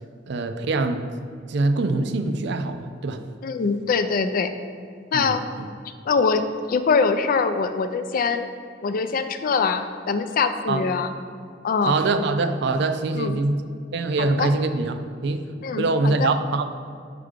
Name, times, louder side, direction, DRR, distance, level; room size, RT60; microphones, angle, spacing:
voice 1, 0.3-1.1 1.5-3.3 5.1-5.7 10.7-10.8 11.9-13.6 13.9-15.4 15.8-16.7, right 3 dB, 65° right, 8 dB, 0.4 m, -24 dB
voice 2, 3.4-4.5 5.1-5.4 6.0-8.5 8.8-11.1 11.6-12.0 13.1-13.4 14.2-14.5 15.6-16.3, left 5 dB, 50° left, 10 dB, 0.3 m, -23 dB
5.0 x 4.5 x 5.1 m, 2.2 s
head